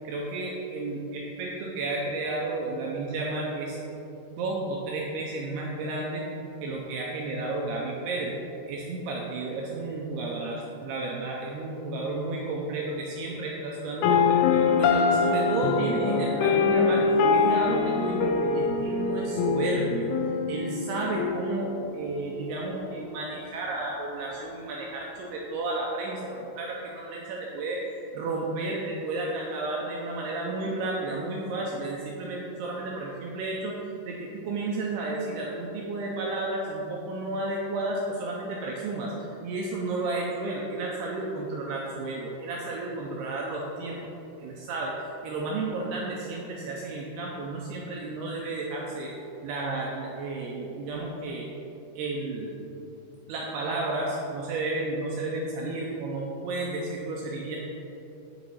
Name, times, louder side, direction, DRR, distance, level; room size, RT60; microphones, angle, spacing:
voice 1, 0.0-3.8 4.3-6.2 6.6-8.3 8.7-33.8 34.0-39.1 39.4-44.1 44.4-49.1 49.4-51.5 52.0-52.5 53.3-57.6, right 2 dB, 85° right, -2 dB, 2.3 m, -32 dB
sound 1, 14.0-22.0, left 4 dB, 85° left, 2.3 m, -24 dB
8.6 x 4.1 x 4.5 m, 2.9 s
omnidirectional pair, 5.1 m